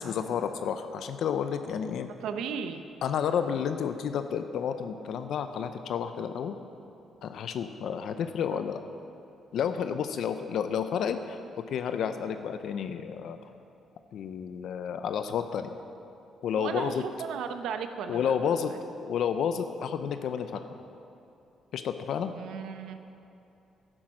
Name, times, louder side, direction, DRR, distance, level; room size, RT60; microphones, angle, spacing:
voice 1, 0.0-2.1 3.0-6.6 7.2-8.8 9.5-11.4 11.7-13.4 14.1-15.8 16.4-16.9 18.1-18.7 19.0-20.6 21.7-22.3, left 7 dB, 70° left, 8 dB, 0.6 m, -31 dB
voice 2, 2.1-2.9 8.5-8.6 16.6-18.8 22.3-23.0, right 7 dB, 85° right, 8 dB, 0.8 m, -36 dB
11.0 x 10.0 x 6.4 m, 2.7 s
cardioid pair, 90°, 0 cm